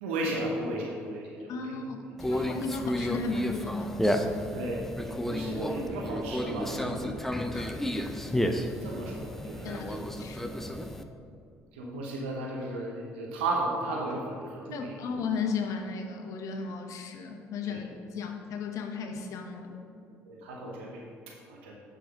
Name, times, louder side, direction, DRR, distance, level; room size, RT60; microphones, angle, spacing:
voice 1, 0.0-1.8 2.2-2.5 4.5-7.1 8.4-8.5 8.8-9.9 11.7-15.0 17.7-17.8 20.3-21.8, right 2 dB, 90° right, -1 dB, 1.0 m, -35 dB
voice 2, 1.5-2.0 2.3-4.0 7.5-7.7 9.6-10.4 14.7-19.8, left 5 dB, 65° left, 4 dB, 0.9 m, -35 dB
Conversation, 2.2-11.0, equal, 5° left, 0.6 m, -32 dB
6.9 x 5.9 x 5.0 m, 2.4 s
hypercardioid pair, 60°, 6 cm